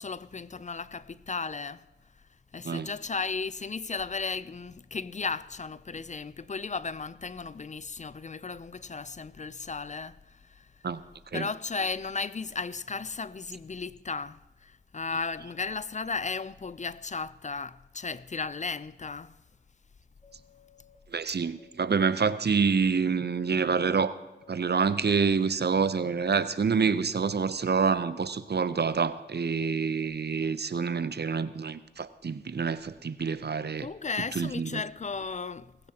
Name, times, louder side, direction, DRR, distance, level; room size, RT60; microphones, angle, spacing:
voice 1, 0.0-1.9 2.5-10.7 11.3-19.3 33.8-35.7, left 4 dB, 40° left, 0.4 m, -35 dB
sound 1, 20.2-21.0 21.6-22.3 23.1-23.8 24.4-25.1 25.7-30.0, left 9 dB, 20° left, 1.7 m, -60 dB
voice 2, 21.1-24.2 24.5-33.9 34.3-34.8, right 5 dB, 60° right, 0.6 m, -27 dB
19.0 x 16.0 x 2.9 m
wide cardioid pair, 50°, 19 cm